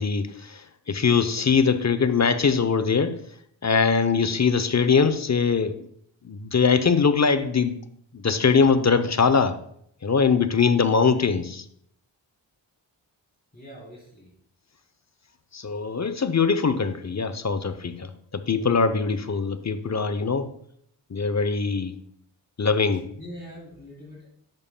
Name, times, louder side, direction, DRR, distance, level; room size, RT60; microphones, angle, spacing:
voice 1, 0.0-3.2 3.6-5.8 6.2-7.8 8.1-9.6 10.0-11.6 15.5-20.5 21.1-22.0 22.6-23.1, left 5 dB, 35° left, 0.7 m, -22 dB
voice 2, 13.5-14.3 23.1-24.3, equal, 20° left, 3.4 m, -43 dB
10.5 x 7.0 x 2.2 m
cardioid pair, 40°, 47 cm